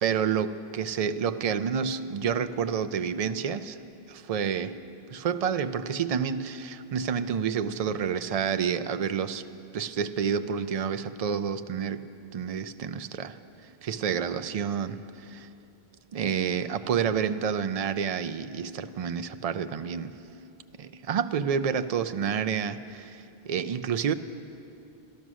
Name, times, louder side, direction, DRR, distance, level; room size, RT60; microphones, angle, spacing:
voice 1, 0.0-3.8 4.1-4.8 5.1-9.4 9.7-13.4 13.8-15.5 16.1-20.1 20.8-24.1, right 7 dB, 65° right, 11 dB, 0.3 m, -29 dB
14.0 x 12.5 x 6.2 m, 2.6 s
omnidirectional pair, 1.1 m